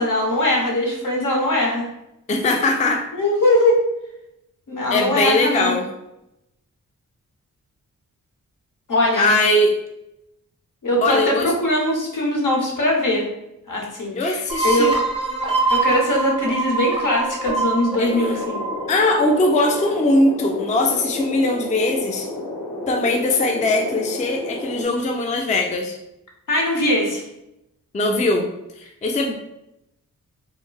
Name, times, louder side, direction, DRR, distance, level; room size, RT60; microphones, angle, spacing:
voice 1, 0.0-1.9 3.2-3.8 4.7-5.7 8.9-9.3 10.8-13.3 13.7-14.9 15.7-18.6 26.5-27.2, left 1 dB, 65° left, -1 dB, 1.0 m, -21 dB
voice 2, 2.3-3.1 4.9-5.9 9.2-9.8 11.0-11.5 14.1-15.0 18.0-18.4 18.9-22.3 22.9-26.0 27.9-28.5 28.8-29.4, left 2 dB, 20° left, 3 dB, 0.4 m, -20 dB
sound 1, 14.5-19.9, right 3 dB, 15° right, 0.8 m, -24 dB
sound 2, 18.0-24.8, left 2 dB, 85° left, 0.7 m, -31 dB
3.6 x 2.0 x 2.3 m, 0.85 s
cardioid pair, 45°, 35 cm